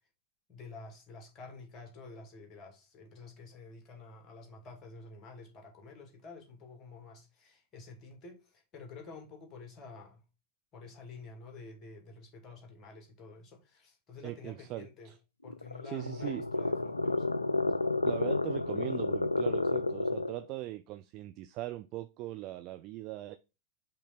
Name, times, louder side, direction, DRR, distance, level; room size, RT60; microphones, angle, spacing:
voice 1, 0.5-10.2 10.7-15.1 15.4-17.4, left 4 dB, 25° left, 2.0 m, -50 dB
voice 2, 14.2-15.1 15.8-16.5 18.0-23.4, right 15 dB, 40° right, 0.4 m, -40 dB
sound 1, 15.4-20.4, left 2 dB, 80° left, 0.3 m, -31 dB
5.4 x 3.4 x 5.7 m
figure-of-eight pair, 90°, 0 cm